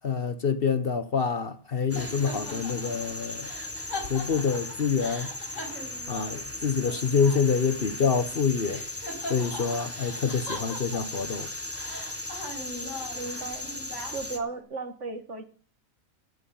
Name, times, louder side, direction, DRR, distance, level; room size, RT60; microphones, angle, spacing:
voice 1, 0.0-3.5 4.1-5.3 6.1-8.8 9.2-11.5, left 6 dB, 45° left, 1.0 m, -27 dB
sound 1, 1.9-8.4 8.7-11.3 11.7-14.6, left 1 dB, 65° left, 5.0 m, -41 dB
sound 2, 1.9-14.4, left 1 dB, 10° left, 1.5 m, -37 dB
voice 2, 12.6-13.7 14.1-15.4, right 3 dB, 55° right, 2.0 m, -36 dB
17.0 x 5.7 x 8.3 m
omnidirectional pair, 1.5 m